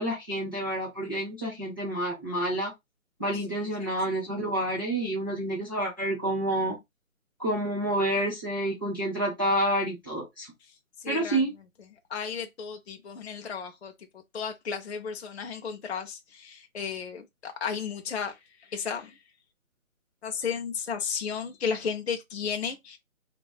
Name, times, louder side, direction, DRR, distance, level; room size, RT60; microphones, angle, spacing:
voice 1, 0.0-2.7 3.2-6.8 7.4-10.5 11.1-11.5, right 1 dB, 15° right, 0.6 m, -28 dB
voice 2, 11.0-11.4 12.1-13.9 14.3-18.4 18.7-19.2 20.2-23.0, left 6 dB, 55° left, 0.5 m, -33 dB
2.7 x 2.2 x 2.3 m
figure-of-eight pair, 160°, 42 cm